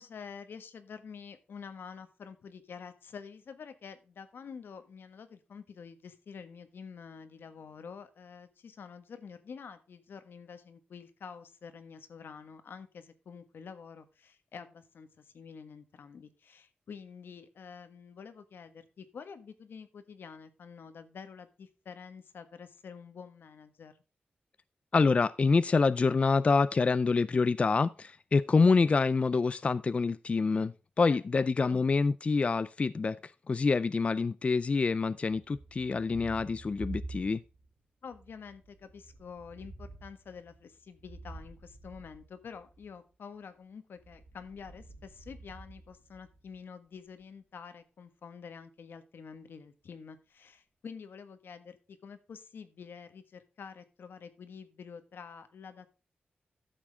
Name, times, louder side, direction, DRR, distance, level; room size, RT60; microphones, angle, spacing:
voice 1, 0.0-23.9 31.7-31.8 38.0-55.9, left 6 dB, 85° left, 1.5 m, -48 dB
voice 2, 24.9-37.4, left 4 dB, 35° left, 0.4 m, -26 dB
Thunder, 35.3-37.7 38.0-42.9 43.9-46.6, right 2 dB, 85° right, 3.1 m, -48 dB
12.5 x 7.4 x 3.4 m
wide cardioid pair, 140°, 4 cm